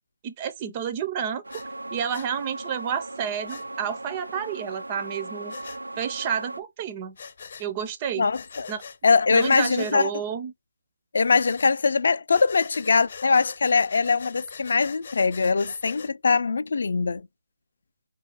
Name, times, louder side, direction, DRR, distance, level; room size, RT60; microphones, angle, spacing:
voice 1, 0.2-1.4 1.9-5.5 6.0-7.1 7.6-8.3 8.7-8.8 9.3-10.5, right 8 dB, 20° right, 0.4 m, -30 dB
sound 1, 1.4-6.6, right 2 dB, 90° right, 0.5 m, -38 dB
Breathing, 1.5-1.7 2.1-2.3 3.5-3.7 5.5-5.8 7.2-7.7 8.3-9.0 9.4-10.0 11.3-11.7 12.3-16.1, left 6 dB, 40° left, 0.8 m, -42 dB
voice 2, 8.2-8.7 9.0-10.1 11.1-17.2, left 4 dB, 55° left, 0.4 m, -22 dB
4.9 x 2.4 x 3.9 m
figure-of-eight pair, 160°, 0 cm